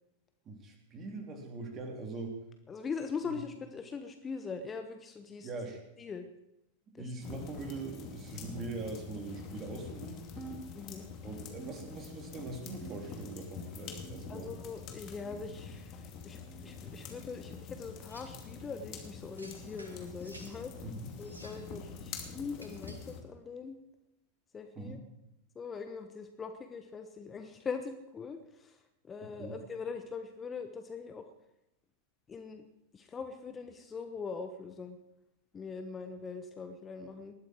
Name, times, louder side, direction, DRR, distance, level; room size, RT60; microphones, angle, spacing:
voice 1, 0.5-2.4 3.2-3.3 5.4-5.8 7.0-10.3 11.2-14.5 20.8-21.1 24.8-25.0 29.2-29.5, right 3 dB, 30° right, 3 dB, 3.6 m, -42 dB
voice 2, 2.7-5.5 6.0-6.2 6.9-7.4 10.7-11.1 14.3-20.7 21.2-23.8 24.5-25.0 25.5-28.8 29.0-31.2 32.3-32.6 32.9-35.0 35.5-37.3, left 5 dB, 20° left, 7 dB, 1.2 m, -42 dB
sound 1, 7.2-23.2, left 5 dB, 40° left, 2.5 m, -46 dB
sound 2, 10.4-11.2 11.6-12.4 12.8-13.4 14.0-14.6 15.2-15.6 16.5-16.7 17.7-17.9 18.9-19.1 20.1-20.3 21.3-21.5 22.6-22.7 23.8-23.9 25.0-25.1, right 5 dB, 10° right, 2.3 m, -51 dB
sound 3, 18.1-18.4 19.4-20.6 21.2-21.7 22.5-23.1, equal, 80° right, 3.2 m, -54 dB
19.5 x 12.5 x 4.7 m, 0.89 s
figure-of-eight pair, 90°, 0 cm